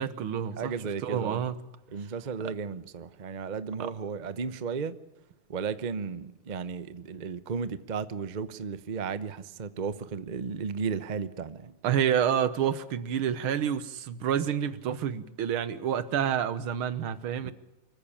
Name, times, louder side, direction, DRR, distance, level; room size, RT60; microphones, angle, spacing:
voice 1, 0.0-0.7 1.0-1.6 3.8-3.9 11.8-17.5, right 9 dB, 90° right, 2.0 m, -28 dB
voice 2, 0.6-1.4 1.9-4.9 5.5-11.7 17.4-17.5, right 5 dB, 45° right, 0.6 m, -34 dB
25.0 x 14.5 x 8.5 m
omnidirectional pair, 2.3 m